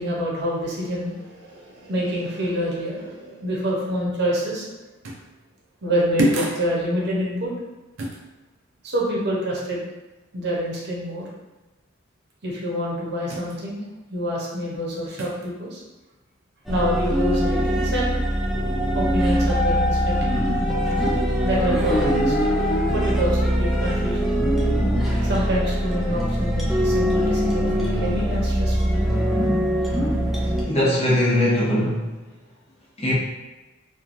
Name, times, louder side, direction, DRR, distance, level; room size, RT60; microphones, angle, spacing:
voice 1, 0.0-4.8 5.8-7.5 8.8-9.9 10.3-11.2 12.4-13.8 14.1-15.8 16.7-18.2 18.9-20.4 21.4-22.5 22.9-24.3 25.2-29.0, equal, 55° right, -5 dB, 0.8 m, -27 dB
sound 1, 5.0-5.3 6.2-6.7 8.0-8.2 13.3-13.6 15.2-15.5, right 1 dB, 75° right, 0.4 m, -25 dB
sound 2, 16.7-30.6, equal, ahead, 0.4 m, -22 dB
voice 2, 30.6-32.2 33.0-33.1, left 1 dB, 30° left, -6 dB, 0.8 m, -21 dB
3.0 x 2.3 x 2.5 m, 1.1 s
head